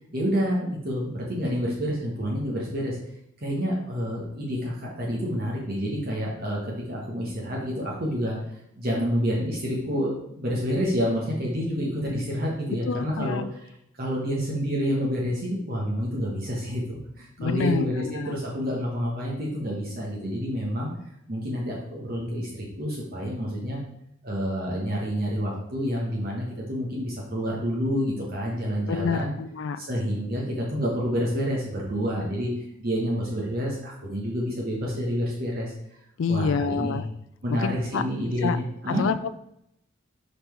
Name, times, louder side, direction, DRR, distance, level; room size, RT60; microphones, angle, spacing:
voice 1, 0.1-3.0 3.4-8.4 8.8-13.4 14.0-20.9 21.3-23.8 24.2-29.3 29.8-32.5 32.8-35.7 36.3-37.0 37.4-39.0, equal, 45° right, -3 dB, 1.2 m, -28 dB
voice 2, 12.9-13.5 17.4-18.3 28.9-29.8 36.2-37.1 37.6-38.0 38.4-38.6 38.9-39.3, left 5 dB, 70° left, 12 dB, 0.4 m, -27 dB
5.2 x 4.3 x 5.8 m, 0.78 s
head